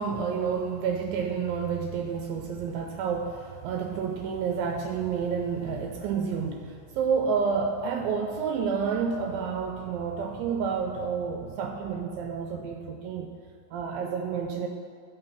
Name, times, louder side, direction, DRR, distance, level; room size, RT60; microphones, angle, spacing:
voice 1, 0.0-13.3 13.7-14.7, right 6 dB, 80° right, 4 dB, 2.2 m, -29 dB
9.8 x 3.6 x 7.0 m, 2.1 s
omnidirectional pair, 4.4 m